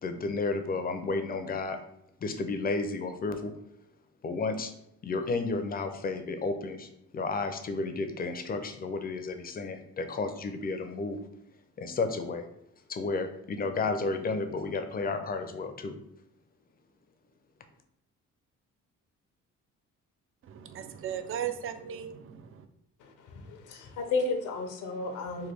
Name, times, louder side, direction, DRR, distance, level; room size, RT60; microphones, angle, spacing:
voice 1, 0.0-1.8 2.2-3.5 4.2-4.7 5.0-11.2 11.8-12.4 12.9-16.0, left 3 dB, 30° left, 7 dB, 0.4 m, -32 dB
voice 2, 20.4-22.7, right 9 dB, 45° right, 9 dB, 0.4 m, -37 dB
voice 3, 23.0-25.5, left 3 dB, 85° left, 5 dB, 0.6 m, -33 dB
3.2 x 2.2 x 3.3 m, 0.78 s
cardioid pair, 90°, 30 cm